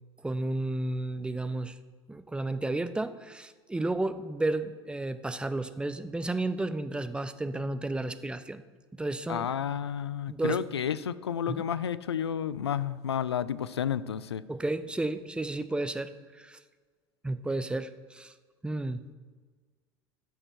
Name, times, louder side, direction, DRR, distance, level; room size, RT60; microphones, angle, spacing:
voice 1, 0.2-1.7 2.1-8.6 9.0-9.5 10.3-10.6 11.5-11.6 14.5-16.6 17.2-18.3 18.6-19.0, right 2 dB, 5° right, 11 dB, 0.6 m, -32 dB
voice 2, 9.3-14.4, left 8 dB, 80° left, 16 dB, 0.4 m, -31 dB
13.5 x 6.6 x 4.5 m, 1.5 s
figure-of-eight pair, 70°, 14 cm